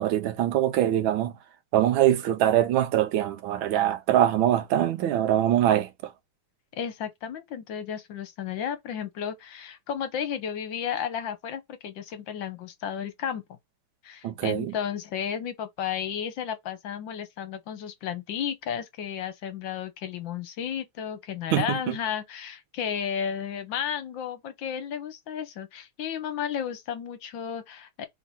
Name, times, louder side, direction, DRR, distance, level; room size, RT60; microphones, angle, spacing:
voice 1, 0.0-1.3 1.7-6.1 14.2-14.7 21.5-22.0, right 12 dB, 75° right, 1.4 m, -23 dB
voice 2, 6.8-13.4 14.0-28.1, left 8 dB, 65° left, 1.4 m, -33 dB
3.6 x 2.9 x 4.0 m
omnidirectional pair, 2.4 m